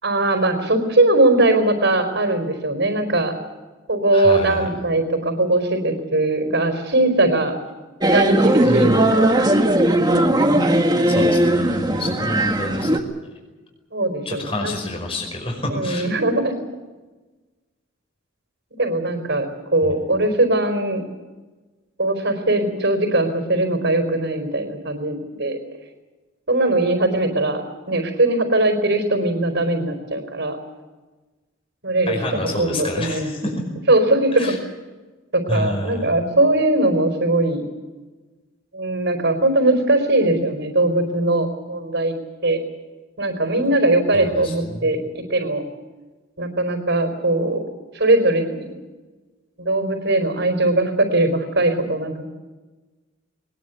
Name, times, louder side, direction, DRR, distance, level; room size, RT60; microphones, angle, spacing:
voice 1, 0.0-3.3 3.9-7.6 8.0-9.5 10.4-11.1 13.9-14.7 15.7-16.6 18.8-21.0 22.0-25.6 26.5-27.6 27.9-30.6 31.8-33.3 33.9-34.5 35.3-37.6 38.7-42.1 42.4-42.6 43.2-45.6 46.4-47.6 47.9-48.7 49.6-52.3, right 2 dB, 65° right, 3 dB, 4.4 m, -20 dB
voice 2, 4.1-4.7 8.6-9.0 11.1-12.9 14.2-16.1 19.8-19.9 32.1-33.5 34.3-34.6 35.5-36.0 44.1-45.1, left 1 dB, 30° left, 2 dB, 5.2 m, -28 dB
sound 1, 8.0-13.0, right 1 dB, 20° right, 1.8 m, -18 dB
22.0 x 20.5 x 8.3 m, 1.2 s
head